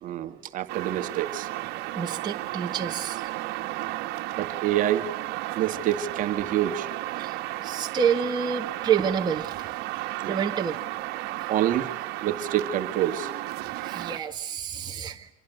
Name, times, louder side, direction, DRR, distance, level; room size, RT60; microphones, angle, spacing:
voice 1, 0.0-1.5 4.4-5.1 5.5-6.9 10.2-10.4 11.5-11.9 12.2-13.3, right 11 dB, 45° right, 8 dB, 2.1 m, -27 dB
sound 1, 0.7-14.2, right 17 dB, 60° right, 2.0 m, -33 dB
voice 2, 1.9-3.3 7.1-9.7 10.3-10.8 13.6-15.3, right 7 dB, 20° right, 1 dB, 1.8 m, -28 dB
26.5 x 22.5 x 9.5 m, 0.78 s
cardioid pair, 140°, 19 cm